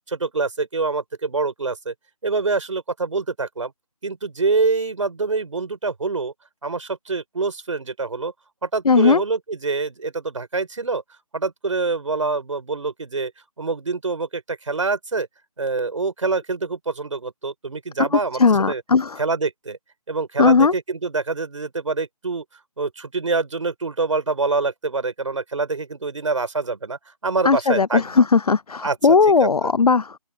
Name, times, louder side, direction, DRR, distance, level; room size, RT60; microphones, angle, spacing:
voice 1, 0.1-1.9 2.2-3.7 4.0-6.3 6.6-8.3 8.6-11.0 11.3-13.3 13.6-15.3 15.6-18.8 19.2-19.8 20.1-22.4 22.8-28.3 28.8-29.1 29.4-29.7, right 4 dB, 55° right, 4.8 m, -25 dB
voice 2, 8.9-9.2 18.0-19.2 20.4-20.7 27.4-30.2, left 5 dB, 80° left, 0.6 m, -17 dB
open air
figure-of-eight pair, 170°, 19 cm